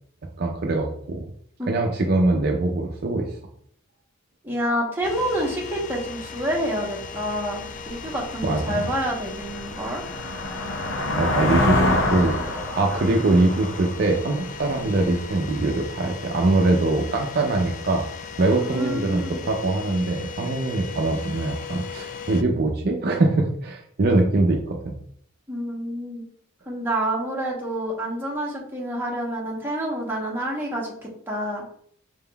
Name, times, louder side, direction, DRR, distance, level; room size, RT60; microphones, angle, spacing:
voice 1, 0.4-1.2 1.7-3.3 8.4-8.9 11.2-18.1 18.4-24.9, right 2 dB, 50° right, 2 dB, 0.5 m, -23 dB
voice 2, 4.4-10.0 18.6-19.4 25.5-26.2 26.7-31.6, equal, 10° right, -3 dB, 0.9 m, -28 dB
sound 1, 5.0-22.4, left 5 dB, 40° left, 0.3 m, -38 dB
sound 2, 7.9-8.0 8.5-15.1, left 1 dB, 60° left, 0.7 m, -26 dB
4.9 x 3.6 x 2.3 m, 0.63 s
head